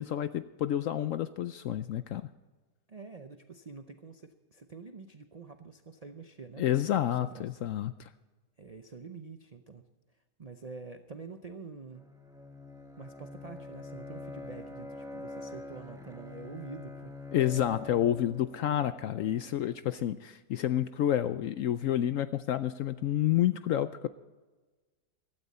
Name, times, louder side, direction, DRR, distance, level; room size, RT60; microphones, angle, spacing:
voice 1, 0.0-2.3 6.6-8.1 17.3-24.1, left 11 dB, 70° left, 12 dB, 0.8 m, -29 dB
voice 2, 2.9-6.6 7.1-7.5 8.6-9.8 10.4-12.1 13.0-17.1, right 4 dB, 70° right, 7 dB, 0.3 m, -46 dB
Bowed string instrument, 11.9-19.7, left 2 dB, 5° right, 1.0 m, -45 dB
15.5 x 13.0 x 4.2 m, 1.3 s
omnidirectional pair, 1.8 m